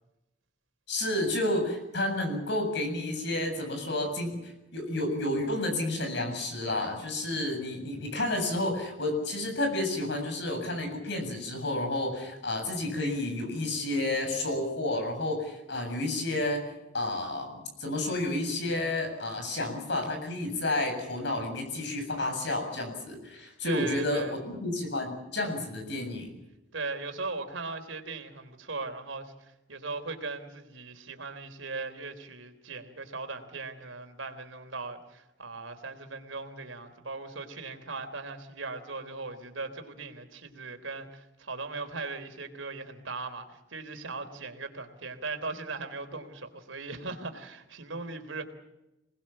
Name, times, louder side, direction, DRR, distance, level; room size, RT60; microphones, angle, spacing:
voice 1, 0.9-26.3, left 1 dB, 65° left, 5 dB, 7.6 m, -31 dB
voice 2, 23.7-24.4 26.7-29.3 29.7-48.4, right 3 dB, 90° right, 7 dB, 3.5 m, -38 dB
27.0 x 20.0 x 7.5 m, 0.96 s
head